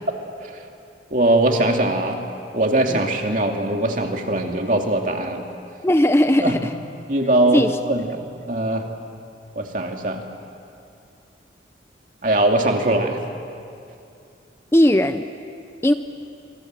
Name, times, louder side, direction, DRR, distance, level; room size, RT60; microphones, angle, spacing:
voice 1, 1.1-2.2 2.5-5.4 6.4-6.6 7.1-8.8 9.6-10.2 12.2-13.2, right 1 dB, 45° right, 2 dB, 2.5 m, -21 dB
voice 2, 5.8-6.7 7.5-7.8 14.7-15.3 15.8-15.9, left 1 dB, 15° left, 9 dB, 0.6 m, -17 dB
27.5 x 26.5 x 7.6 m, 2.6 s
head